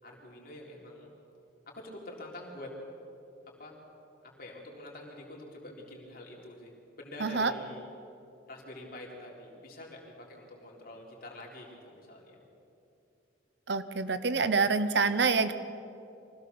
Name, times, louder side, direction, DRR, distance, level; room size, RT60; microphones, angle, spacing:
voice 1, 0.0-1.1 1.7-2.7 3.6-3.8 4.2-7.8 8.5-12.4, left 1 dB, 50° left, -2 dB, 3.9 m, -46 dB
voice 2, 7.2-7.5 13.7-15.5, right 4 dB, 60° right, 11 dB, 0.9 m, -26 dB
24.0 x 16.5 x 7.0 m, 2.7 s
head